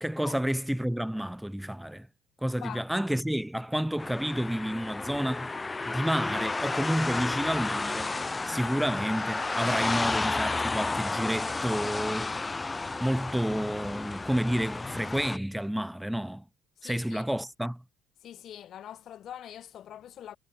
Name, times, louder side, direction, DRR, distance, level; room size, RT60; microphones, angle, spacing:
voice 1, 0.0-2.1 2.4-5.5 5.9-8.1 8.5-12.3 13.0-16.4 16.8-17.8, equal, 5° right, 0.7 m, -30 dB
voice 2, 2.5-2.9 16.8-17.3 18.2-20.4, left 10 dB, 60° left, 2.3 m, -43 dB
sound 1, 4.0-15.4, left 3 dB, 20° left, 0.3 m, -32 dB
supercardioid pair, 75°, 0 cm